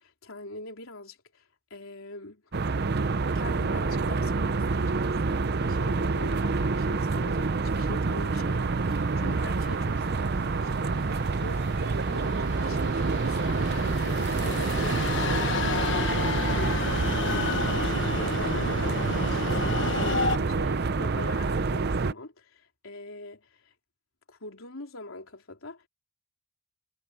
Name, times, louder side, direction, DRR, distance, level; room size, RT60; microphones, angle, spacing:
voice 1, 0.0-1.4 1.7-2.4 3.3-15.8 16.5-19.6 20.4-23.7 24.3-25.9, left 2 dB, 85° left, 3.6 m, -43 dB
sound 1, 2.5-22.1, right 4 dB, 50° right, 0.6 m, -27 dB
sound 2, 8.7-20.4, left 4 dB, 60° left, 1.3 m, -33 dB
head